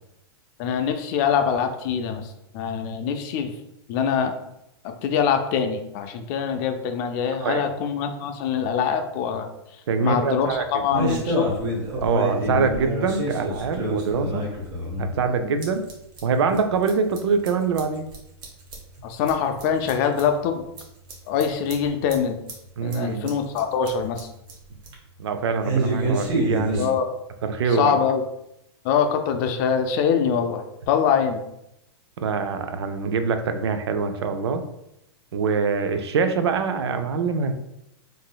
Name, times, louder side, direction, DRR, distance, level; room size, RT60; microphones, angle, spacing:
voice 1, 0.6-2.3 2.5-3.5 3.9-4.4 4.8-9.5 10.0-11.5 19.0-20.6 21.3-22.4 22.8-24.3 26.8-27.1 27.7-28.2 28.8-31.4, left 7 dB, 45° left, 6 dB, 0.4 m, -24 dB
voice 2, 7.4-7.7 9.9-10.9 12.0-14.4 15.0-15.8 16.2-18.1 22.8-23.3 25.2-27.0 27.4-28.0 32.2-34.6 35.3-37.5, right 5 dB, 80° right, 7 dB, 0.4 m, -24 dB
sound 1, 10.5-15.9 16.2-16.3 16.5-16.6 16.8-17.2 17.4-20.2 20.8-20.9 21.1-21.8 22.1-22.2 22.5-22.6 22.9-23.3 23.6-23.7 23.9-24.6 24.8-24.9 25.6-26.8, right 1 dB, 35° right, 0.9 m, -27 dB
3.7 x 2.6 x 2.2 m, 0.83 s
hypercardioid pair, 130°, 14 cm